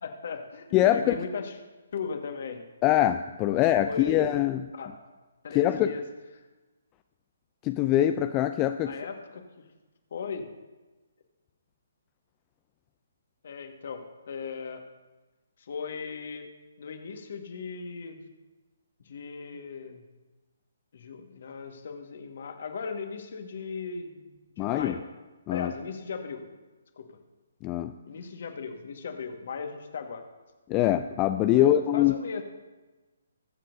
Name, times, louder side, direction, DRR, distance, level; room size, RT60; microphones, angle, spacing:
voice 1, 0.0-1.5 1.9-2.6 3.5-4.3 4.7-5.0 5.4-6.0 8.8-9.6 10.1-10.5 13.4-14.8 15.6-16.5 16.8-18.3 19.0-20.0 20.9-25.0 25.5-26.5 27.0-27.1 28.0-30.3 31.5-32.4, left 5 dB, 55° left, 5 dB, 1.6 m, -37 dB
voice 2, 0.7-1.2 2.8-4.6 5.5-5.9 7.6-8.9 24.6-25.0 25.5-25.7 27.6-27.9 30.7-32.1, left 12 dB, 25° left, 8 dB, 0.4 m, -23 dB
21.5 x 7.6 x 2.7 m, 1.2 s
figure-of-eight pair, 140°, 0 cm